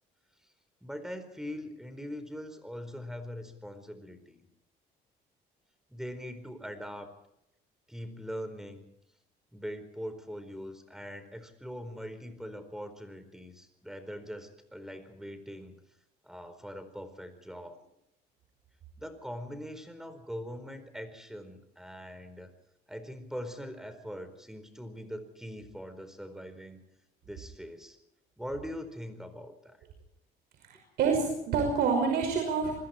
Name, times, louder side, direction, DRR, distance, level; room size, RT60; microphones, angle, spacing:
voice 1, 0.8-4.4 5.9-7.1 7.9-8.8 9.5-15.7 16.2-17.8 19.0-22.5 22.9-26.8 27.2-28.0 28.4-29.8, equal, 5° right, 9 dB, 4.5 m, -42 dB
voice 2, 30.6-32.7, right 5 dB, 75° right, 3 dB, 5.8 m, -27 dB
28.5 x 21.0 x 4.5 m, 0.80 s
cardioid pair, 110°, 17 cm